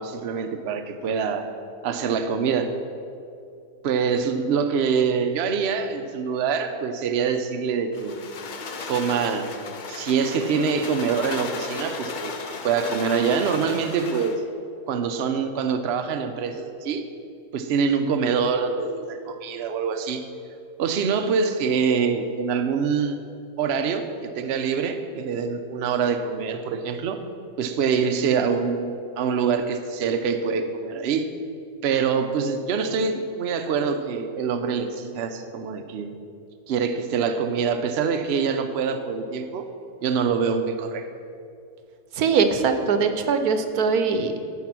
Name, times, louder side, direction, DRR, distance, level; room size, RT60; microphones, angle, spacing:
voice 1, 0.0-1.5 1.8-2.7 3.8-8.2 8.9-9.5 9.9-14.4 14.9-17.1 17.5-20.2 20.8-23.2 23.6-27.2 27.6-31.3 31.8-36.1 36.7-39.7 40.0-41.1, right 6 dB, 55° right, 8 dB, 0.7 m, -25 dB
sound 1, 7.9-14.4, left 4 dB, 60° left, 0.5 m, -35 dB
voice 2, 42.2-44.5, right 5 dB, 70° right, 8 dB, 1.2 m, -22 dB
14.0 x 4.9 x 6.0 m, 2.5 s
omnidirectional pair, 1.7 m